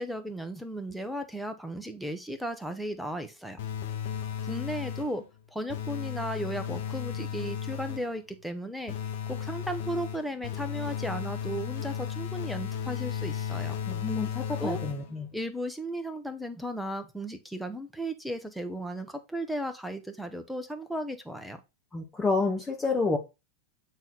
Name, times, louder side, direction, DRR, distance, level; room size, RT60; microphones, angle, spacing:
voice 1, 0.0-3.7 4.4-5.2 5.5-8.9 9.3-13.8 14.6-14.8 15.3-21.6, right 1 dB, ahead, 1.2 m, -35 dB
sound 1, 3.6-5.3 5.7-8.2 8.9-15.3, left 8 dB, 55° left, 1.2 m, -35 dB
voice 2, 13.9-15.3 21.9-23.2, left 3 dB, 15° left, 1.4 m, -29 dB
8.9 x 4.1 x 4.1 m
figure-of-eight pair, 90°, 0 cm